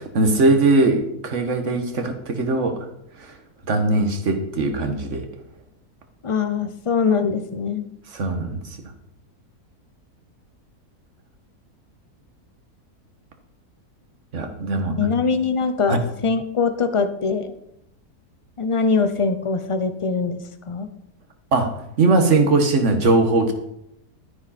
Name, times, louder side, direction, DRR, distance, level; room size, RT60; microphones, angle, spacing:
voice 1, 0.0-2.9 3.2-3.4 3.7-5.3 8.1-8.6 14.3-15.1 15.9-16.0 21.5-21.7 22.0-23.5, right 2 dB, 50° right, 6 dB, 1.7 m, -20 dB
voice 2, 6.2-7.9 15.0-17.5 18.6-20.9, left 5 dB, 35° left, 10 dB, 0.5 m, -22 dB
12.5 x 9.9 x 4.3 m, 0.79 s
omnidirectional pair, 1.6 m